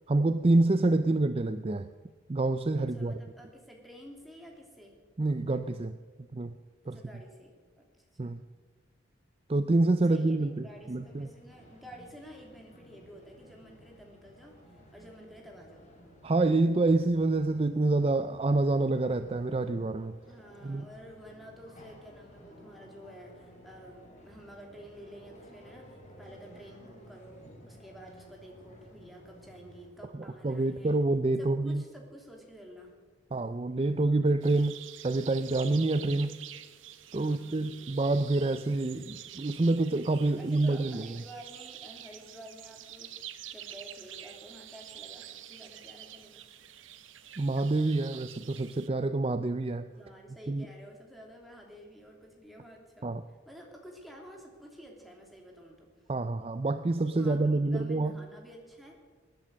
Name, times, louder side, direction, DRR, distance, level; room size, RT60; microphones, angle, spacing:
voice 1, 0.1-1.9 2.3-3.2 5.2-5.9 6.3-6.5 6.9-7.0 8.2-8.4 9.5-11.3 16.2-20.1 20.6-20.9 30.4-31.8 33.3-34.7 35.0-36.3 37.1-41.1 47.4-49.9 50.5-50.6 53.0-53.2 56.1-58.1, right 2 dB, 30° right, 11 dB, 0.4 m, -27 dB
voice 2, 2.8-5.0 6.8-8.4 10.0-15.8 20.3-31.0 31.4-33.0 37.2-38.0 40.4-46.4 49.9-55.9 57.1-59.0, equal, ahead, -1 dB, 3.0 m, -51 dB
sound 1, 10.1-29.9, equal, 40° left, 3.8 m, -55 dB
sound 2, 34.4-48.9, right 11 dB, 85° right, 1.1 m, -47 dB
20.0 x 10.5 x 6.4 m, 1.5 s
head